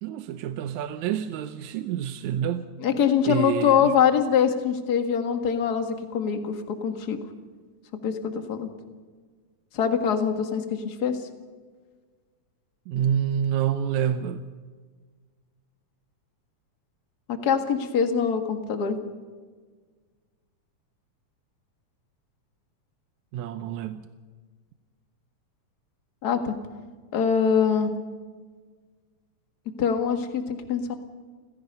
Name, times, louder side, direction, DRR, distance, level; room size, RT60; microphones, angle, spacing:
voice 1, 0.0-2.7 3.3-3.9 12.9-14.4 23.3-24.1, right 9 dB, 75° right, 10 dB, 2.1 m, -28 dB
voice 2, 2.8-7.2 8.0-8.7 9.7-11.2 17.3-19.0 26.2-26.6 27.1-27.9 29.8-30.9, left 7 dB, 40° left, 7 dB, 1.8 m, -24 dB
29.5 x 16.0 x 5.5 m, 1.5 s
omnidirectional pair, 3.4 m